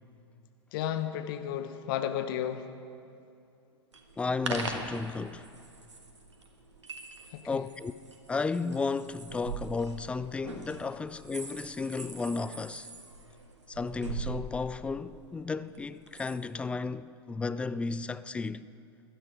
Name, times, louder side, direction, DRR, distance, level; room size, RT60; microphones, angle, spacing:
voice 1, 0.7-2.6 7.3-7.4, left 10 dB, 50° left, 1.0 m, -32 dB
sound 1, 3.9-16.4, right 3 dB, 85° right, 1.6 m, -42 dB
voice 2, 4.2-5.5 7.5-7.9 8.3-12.9 13.7-18.7, left 4 dB, 10° left, 0.3 m, -33 dB
16.0 x 12.0 x 5.1 m
figure-of-eight pair, 100°, 15 cm